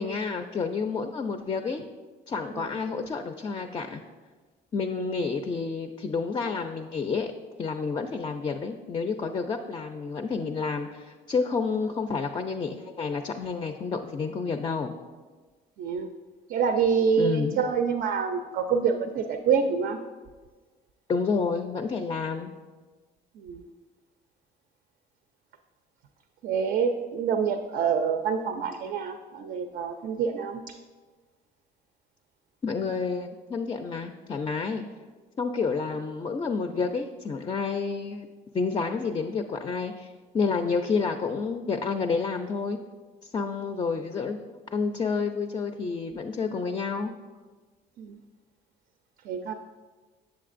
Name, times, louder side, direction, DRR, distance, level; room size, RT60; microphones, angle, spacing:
voice 1, 0.0-1.8 2.3-4.0 4.7-7.3 7.6-15.0 17.2-17.6 21.1-22.5 32.6-34.8 35.4-38.3 38.5-42.8 43.2-47.1, left 4 dB, 25° left, 6 dB, 0.3 m, -29 dB
voice 2, 15.8-16.1 16.5-20.0 23.4-23.6 26.4-30.7 48.0-48.2 49.2-49.5, right 6 dB, 65° right, 7 dB, 0.4 m, -26 dB
7.6 x 7.1 x 2.5 m, 1.4 s
cardioid pair, 110°, 17 cm